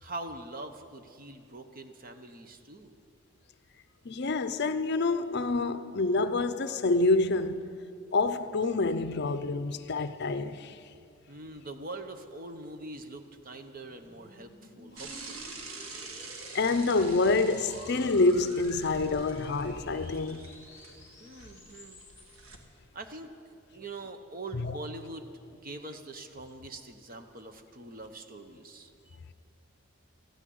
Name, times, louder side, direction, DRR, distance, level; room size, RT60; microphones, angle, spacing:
voice 1, 0.0-2.9 11.3-15.4 21.2-22.0 22.9-23.3 23.7-25.3 25.6-29.2, right 2 dB, 40° right, 0.9 m, -43 dB
voice 2, 4.1-7.8 8.1-10.8 16.5-20.5 24.5-24.7, left 3 dB, 50° left, 0.6 m, -27 dB
sound 1, 13.1-22.5, left 1 dB, 15° left, 2.1 m, -52 dB
Bicycle / Mechanisms, 15.0-22.6, right 3 dB, 85° right, 1.7 m, -46 dB
14.0 x 9.9 x 9.4 m
head